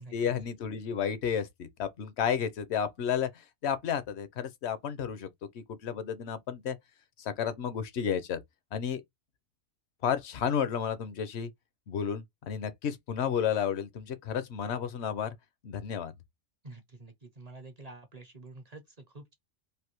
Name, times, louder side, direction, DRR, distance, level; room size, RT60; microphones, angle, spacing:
voice 1, 0.0-5.3 5.5-6.8 7.2-8.4 8.7-9.0 10.0-11.5 11.9-15.3 15.6-16.1, left 8 dB, 65° left, 0.8 m, -32 dB
voice 2, 16.6-19.3, right 2 dB, 45° right, 0.6 m, -48 dB
3.3 x 2.5 x 2.9 m
omnidirectional pair, 1.4 m